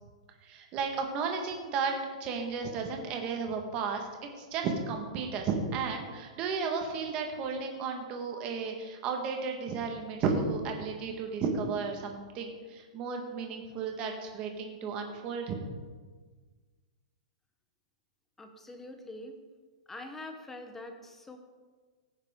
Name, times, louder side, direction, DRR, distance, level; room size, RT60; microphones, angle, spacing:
voice 1, 0.4-15.6, right 5 dB, 30° right, 3 dB, 1.5 m, -33 dB
voice 2, 18.4-19.4 19.9-21.4, left 2 dB, 10° left, 6 dB, 0.9 m, -44 dB
16.5 x 9.7 x 3.7 m, 1.5 s
hypercardioid pair, 165°, 4 cm